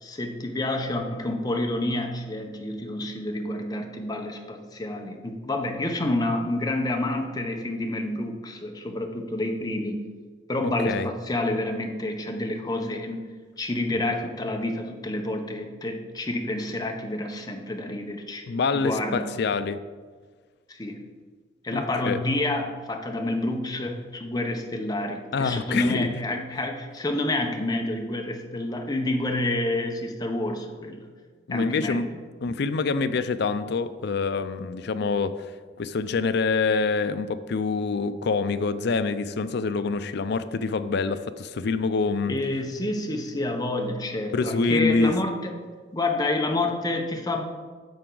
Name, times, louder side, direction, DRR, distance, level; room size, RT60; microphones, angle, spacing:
voice 1, 0.0-10.0 10.5-13.2 13.6-18.5 18.7-19.4 20.7-21.0 21.6-31.1 31.5-32.1 42.3-45.6 45.9-47.5, left 1 dB, 20° left, 3 dB, 0.8 m, -28 dB
voice 2, 18.5-19.8 21.7-22.2 25.3-26.1 31.5-32.1 32.4-35.5 35.8-42.3 44.3-45.1, left 4 dB, 60° left, 12 dB, 0.4 m, -26 dB
10.5 x 6.8 x 3.9 m, 1.5 s
head